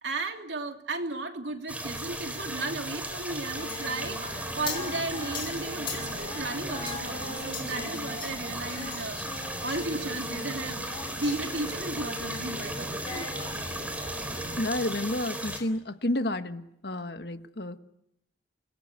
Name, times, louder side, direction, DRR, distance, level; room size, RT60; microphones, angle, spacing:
voice 1, 0.0-9.2 9.6-13.3, right 2 dB, 75° right, 4 dB, 2.9 m, -35 dB
sound 1, 1.7-15.6, right 1 dB, 10° right, 4.0 m, -36 dB
Singing, 3.5-12.7 12.9-13.8, left 4 dB, 30° left, 5.4 m, -41 dB
sound 2, 4.0-14.6, right 1 dB, 40° right, 7.0 m, -42 dB
voice 2, 14.6-17.8, left 1 dB, 60° left, 9 dB, 1.4 m, -30 dB
29.0 x 19.5 x 9.5 m, 0.78 s
head